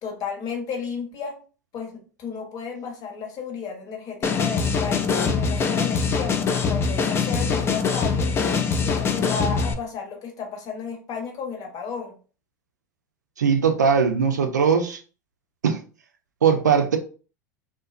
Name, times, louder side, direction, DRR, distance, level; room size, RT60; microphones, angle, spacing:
voice 1, 0.0-1.4 1.7-8.3 8.8-12.2, left 5 dB, 45° left, 1 dB, 0.9 m, -33 dB
sound 1, 4.2-9.7, left 5 dB, 25° left, 0.4 m, -23 dB
voice 2, 13.4-15.0 15.6-15.8 16.4-17.0, right 6 dB, 80° right, 5 dB, 0.4 m, -20 dB
2.5 x 2.1 x 2.4 m, 0.37 s
figure-of-eight pair, 80°, 9 cm